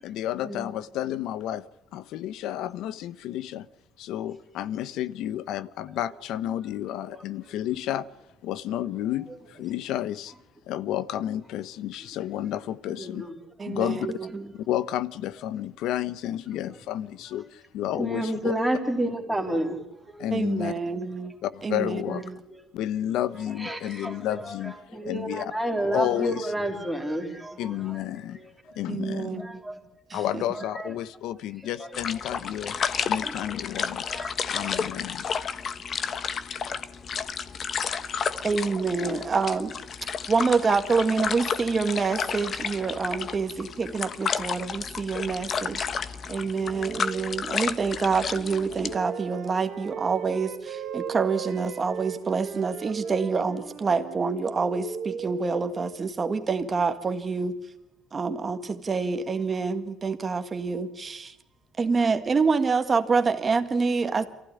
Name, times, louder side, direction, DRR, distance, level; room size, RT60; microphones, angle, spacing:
voice 1, 0.0-1.7 1.9-3.7 4.0-8.1 8.4-10.3 10.7-13.3 13.7-14.2 14.5-18.5 20.2-20.7 21.4-22.3 22.7-24.8 25.0-25.5 25.9-26.5 27.6-28.4 28.7-29.4 30.1-32.7 33.0-34.0 34.5-35.2, left 12 dB, 75° left, 1.1 m, -31 dB
voice 2, 12.9-13.3 14.3-14.4 18.0-20.3 22.5-22.7 23.6-28.5 29.4-29.8 30.5-30.9 31.7-31.9 33.2-33.3 34.1-34.3, right 1 dB, ahead, 3.5 m, -31 dB
voice 3, 13.6-14.4 20.3-21.3 21.6-22.2 28.9-29.5 30.1-30.4 38.4-39.7 40.3-57.5 58.1-61.3 61.8-64.2, right 4 dB, 25° right, 1.7 m, -27 dB
sound 1, 31.9-48.9, left 6 dB, 35° left, 1.2 m, -32 dB
sound 2, 46.5-56.2, right 6 dB, 40° right, 2.0 m, -41 dB
Wind instrument woodwind instrument, 47.9-54.3, right 10 dB, 60° right, 2.5 m, -40 dB
28.0 x 15.5 x 9.9 m
cardioid pair, 165°, 0 cm